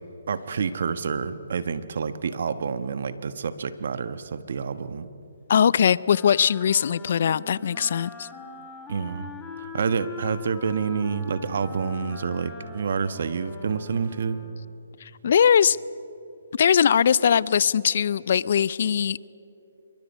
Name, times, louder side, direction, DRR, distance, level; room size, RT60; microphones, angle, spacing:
voice 1, 0.3-5.1 8.9-9.3 9.6-14.4, right 6 dB, 65° right, 12 dB, 1.2 m, -28 dB
voice 2, 5.5-8.3 15.0-15.8 16.5-19.3, left 8 dB, 60° left, 21 dB, 0.5 m, -21 dB
Wind instrument woodwind instrument, 6.0-14.7, left 4 dB, 10° left, 2.3 m, -42 dB
27.0 x 23.5 x 5.5 m, 3.0 s
hypercardioid pair, 145°, 0 cm